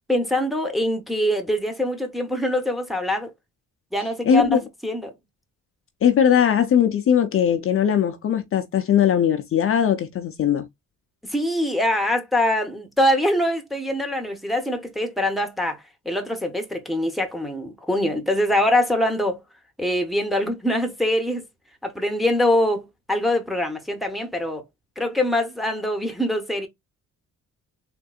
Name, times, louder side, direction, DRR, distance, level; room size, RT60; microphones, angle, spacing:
voice 1, 0.1-3.3 3.9-5.1 11.2-19.4 19.8-21.4 21.8-24.6 25.0-26.7, left 1 dB, ahead, 0.9 m, -23 dB
voice 2, 4.2-4.6 6.0-10.7, left 8 dB, 45° left, 0.6 m, -19 dB
3.6 x 2.6 x 2.3 m
cardioid pair, 90°, 30 cm